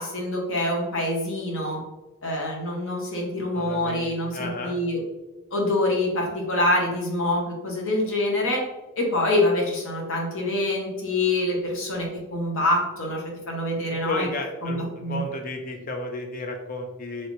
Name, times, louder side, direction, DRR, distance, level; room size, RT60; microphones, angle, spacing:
voice 1, 0.0-1.8 2.2-5.0 5.5-8.6 9.0-14.3 14.6-15.2, left 1 dB, 60° left, -2 dB, 0.9 m, -25 dB
voice 2, 3.5-4.8 14.0-17.3, left 2 dB, 40° left, 3 dB, 0.5 m, -33 dB
3.1 x 2.9 x 2.9 m, 1.1 s
head